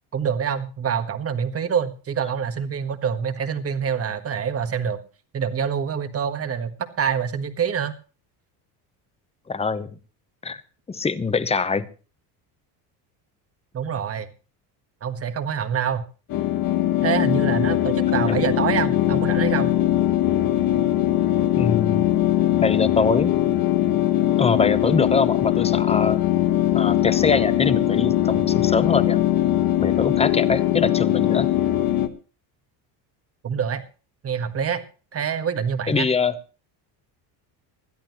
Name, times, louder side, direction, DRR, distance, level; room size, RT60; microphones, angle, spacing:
voice 1, 0.1-5.0 5.3-7.9 13.7-14.3 15.0-16.0 17.0-19.7 33.4-33.8 34.2-34.8 35.1-36.1, right 7 dB, 30° right, 10 dB, 1.5 m, -26 dB
voice 2, 9.5-9.9 10.4-10.6 10.9-11.9 18.3-18.4 21.6-22.0 22.6-23.3 24.4-26.2 26.7-29.2 29.8-31.5 35.9-36.3, left 4 dB, 15° left, 14 dB, 0.9 m, -23 dB
sound 1, 16.3-32.1, left 13 dB, 50° left, 1.4 m, -21 dB
20.5 x 13.0 x 3.1 m, 0.36 s
cardioid pair, 120°, 45 cm